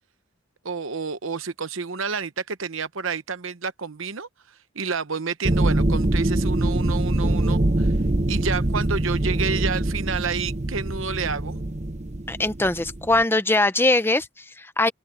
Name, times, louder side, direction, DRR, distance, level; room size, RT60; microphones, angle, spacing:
voice 1, 0.6-4.3 4.7-7.9 8.3-11.6, right 5 dB, 70° right, 1.0 m, -29 dB
sound 1, 5.4-13.2, right 1 dB, 35° right, 1.0 m, -24 dB
voice 2, 12.3-14.9, left 2 dB, 10° left, 0.8 m, -22 dB
head